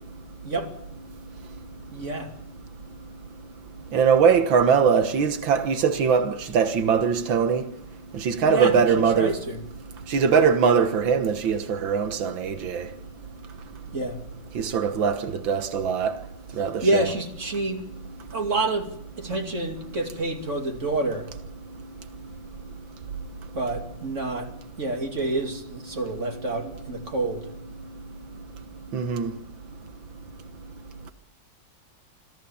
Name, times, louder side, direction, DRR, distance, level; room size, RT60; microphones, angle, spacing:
voice 1, 1.9-2.3 8.5-9.6 13.9-14.2 16.8-17.9 18.3-21.3 23.5-27.5, right 2 dB, 40° right, 3.0 m, -28 dB
voice 2, 3.9-7.6 8.1-9.4 10.1-12.9 14.6-16.2 16.6-17.1 28.9-29.3, right 6 dB, 85° right, 2.1 m, -21 dB
25.5 x 15.5 x 7.1 m
omnidirectional pair, 2.0 m